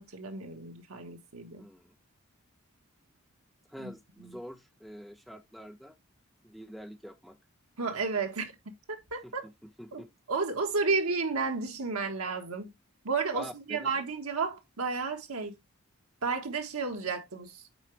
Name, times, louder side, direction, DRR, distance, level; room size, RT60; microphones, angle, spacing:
voice 1, 0.0-1.6 3.8-3.9 4.2-4.4 7.8-9.5 9.9-10.0 10.3-12.7 13.0-15.6 16.2-17.6, right 4 dB, 85° right, 1.5 m, -32 dB
voice 2, 1.6-1.9 3.7-5.9 6.4-7.4 9.2-10.1 13.3-13.9, equal, ahead, 0.8 m, -46 dB
7.8 x 4.8 x 3.3 m
head